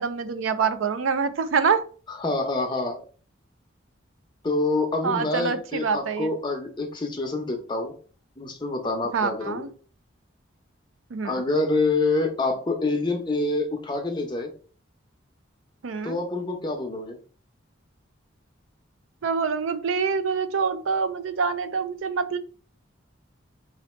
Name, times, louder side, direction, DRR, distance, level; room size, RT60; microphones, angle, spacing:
voice 1, 0.0-1.8 5.0-6.3 9.1-9.7 11.1-11.4 15.8-16.2 19.2-22.4, right 5 dB, 85° right, 10 dB, 0.5 m, -25 dB
voice 2, 2.1-3.0 4.4-7.9 8.4-9.7 11.2-14.5 16.0-17.2, left 2 dB, 25° left, 2 dB, 0.8 m, -26 dB
4.0 x 2.8 x 4.3 m, 0.40 s
head